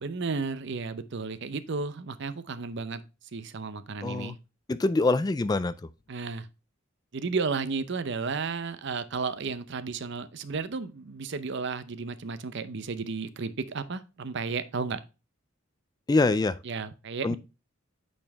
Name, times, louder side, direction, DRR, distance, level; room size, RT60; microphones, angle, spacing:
voice 1, 0.0-3.0 3.3-4.4 6.1-6.5 7.1-15.0 16.6-17.4, right 4 dB, 60° right, 0.6 m, -33 dB
voice 2, 4.0-4.3 4.7-5.7 16.1-16.6 17.2-17.4, left 3 dB, 20° left, 0.3 m, -24 dB
8.7 x 4.4 x 3.3 m
head